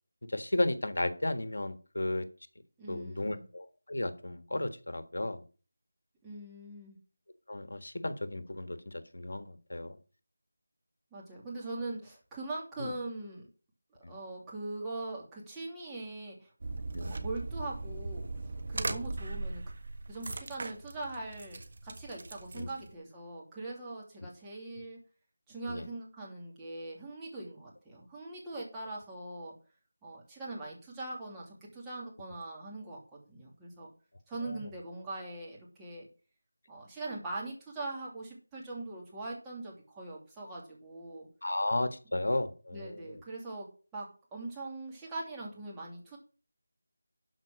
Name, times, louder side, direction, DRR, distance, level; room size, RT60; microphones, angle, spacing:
voice 1, 0.3-2.3 2.9-5.4 7.5-10.0 12.8-12.9 14.0-14.1 16.9-17.1 22.5-22.7 25.7-25.9 34.4-34.6 41.4-43.2, left 1 dB, 75° left, 10 dB, 1.5 m, -34 dB
voice 2, 2.8-3.5 6.2-7.0 11.1-13.5 14.1-16.5 17.1-18.3 18.7-19.6 20.1-25.0 25.5-29.5 30.0-33.0 33.3-33.9 34.3-36.1 36.7-41.3 42.7-43.7 43.9-46.2, right 2 dB, 10° right, -4 dB, 2.7 m, -41 dB
sound 1, 16.6-22.9, right 3 dB, 45° right, 1.5 m, -39 dB
12.5 x 5.0 x 6.3 m, 0.36 s
figure-of-eight pair, 170°, 0 cm